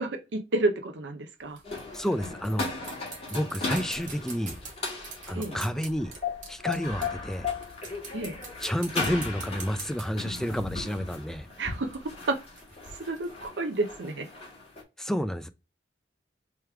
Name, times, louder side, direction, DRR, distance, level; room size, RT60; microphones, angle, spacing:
voice 1, 0.0-1.6 5.3-5.6 8.1-8.3 11.6-12.0 12.3-12.4 13.0-14.3, right 2 dB, 70° right, 0.6 m, -30 dB
sound 1, 1.4-7.3 7.6-10.6 11.8-13.5, right 4 dB, 45° right, 1.6 m, -45 dB
sound 2, 1.6-14.8, left 4 dB, 35° left, 1.4 m, -37 dB
voice 2, 1.9-2.7 3.3-4.6 5.3-6.1 6.5-7.5 8.6-11.5 15.0-15.5, equal, 5° left, 0.3 m, -30 dB
3.3 x 3.1 x 3.3 m
head